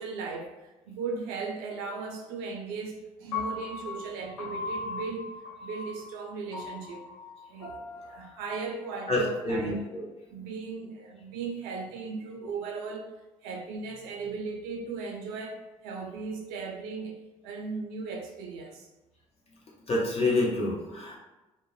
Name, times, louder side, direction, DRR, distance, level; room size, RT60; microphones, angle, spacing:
voice 1, 0.0-7.0 7.5-9.8 10.3-13.1 13.4-18.9, right 4 dB, 60° right, 1 dB, 0.4 m, -37 dB
Piano, 3.3-9.5, left 4 dB, 75° left, 0.6 m, -39 dB
voice 2, 9.1-10.1 19.9-21.2, left 2 dB, 35° left, -4 dB, 0.9 m, -27 dB
2.2 x 2.0 x 3.1 m, 1.0 s
figure-of-eight pair, 50°, 18 cm